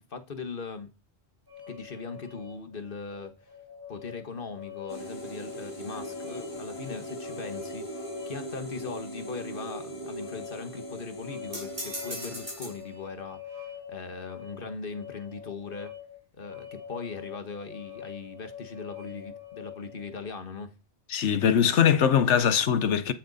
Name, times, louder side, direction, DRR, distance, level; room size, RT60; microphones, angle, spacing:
voice 1, 0.1-0.9 1.7-3.5 3.9-15.9 16.3-20.7, left 4 dB, 50° left, 1.6 m, -39 dB
sound 1, 1.5-20.2, left 9 dB, 55° right, 3.0 m, -45 dB
sound 2, 4.9-12.8, right 1 dB, 25° left, 2.1 m, -40 dB
sound 3, 11.5-12.8, equal, 30° right, 5.5 m, -38 dB
voice 2, 21.1-23.1, left 8 dB, 80° left, 1.2 m, -22 dB
12.5 x 8.9 x 4.1 m
omnidirectional pair, 1.2 m